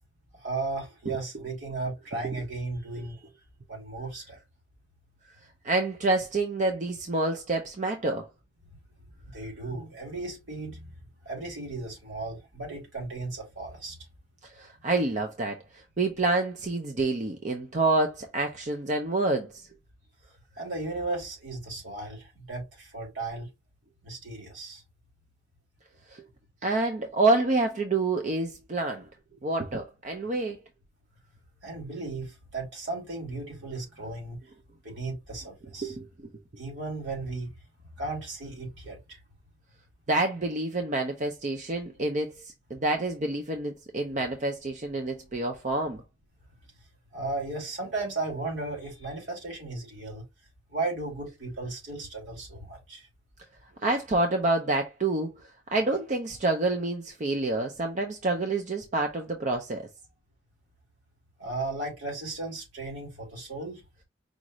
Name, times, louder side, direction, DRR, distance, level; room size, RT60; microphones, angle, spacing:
voice 1, 0.3-3.3 3.7-4.4 9.3-10.9 11.2-14.0 20.6-23.5 24.0-24.8 31.6-34.4 34.8-36.0 36.6-37.5 38.0-39.2 47.1-50.2 50.7-53.1 61.4-63.8, right 2 dB, 75° right, 2.8 m, -35 dB
voice 2, 5.6-8.3 14.4-19.7 26.1-26.2 26.6-29.1 29.4-30.6 35.8-36.1 40.1-46.0 53.8-59.9, right 2 dB, 40° right, 0.6 m, -28 dB
5.1 x 2.5 x 3.0 m
head